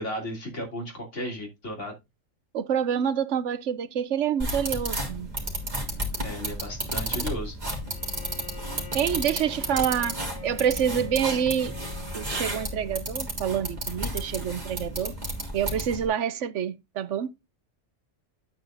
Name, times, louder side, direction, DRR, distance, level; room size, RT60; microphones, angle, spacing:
voice 1, 0.0-1.9 6.2-7.6, equal, 65° left, 3.4 m, -34 dB
voice 2, 2.5-5.3 8.9-11.8 12.1-15.2 15.5-17.3, right 8 dB, 70° right, 1.0 m, -27 dB
sound 1, 4.4-16.1, right 1 dB, 35° right, 3.4 m, -32 dB
Bowed string instrument, 7.8-13.3, left 6 dB, 80° left, 2.5 m, -44 dB
10.5 x 8.9 x 2.5 m
omnidirectional pair, 1.3 m